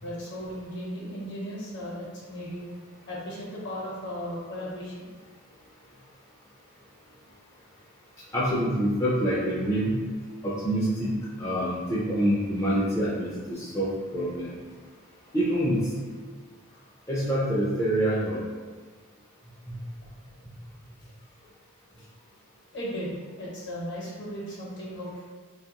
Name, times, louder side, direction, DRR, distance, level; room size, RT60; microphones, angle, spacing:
voice 1, 0.0-2.7 3.1-5.1 16.7-16.8 22.0-22.1 22.7-25.2, equal, 55° left, -5 dB, 0.9 m, -36 dB
voice 2, 8.3-10.0 10.4-11.1 11.4-14.5 15.3-15.8 17.1-18.4, right 1 dB, 15° left, -8 dB, 0.4 m, -26 dB
2.7 x 2.3 x 2.8 m, 1.4 s
head